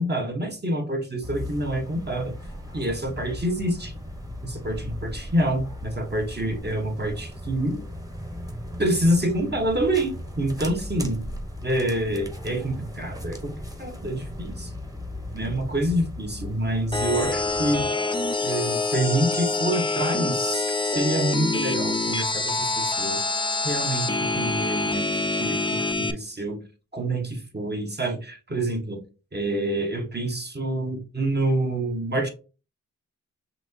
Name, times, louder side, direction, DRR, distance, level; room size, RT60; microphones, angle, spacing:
voice 1, 0.0-2.3 2.7-3.9 4.4-7.8 8.8-11.3 11.6-13.5 13.8-14.7 15.3-18.0 18.4-23.2 23.6-25.1 25.4-26.6 26.9-29.0 29.3-32.3, right 1 dB, 30° right, 3 dB, 1.3 m, -27 dB
sound 1, 1.2-17.9, left 1 dB, 10° right, 1.2 m, -37 dB
sound 2, 16.9-26.1, left 3 dB, 15° left, 0.6 m, -26 dB
6.0 x 2.8 x 2.8 m, 0.34 s
wide cardioid pair, 60°, 33 cm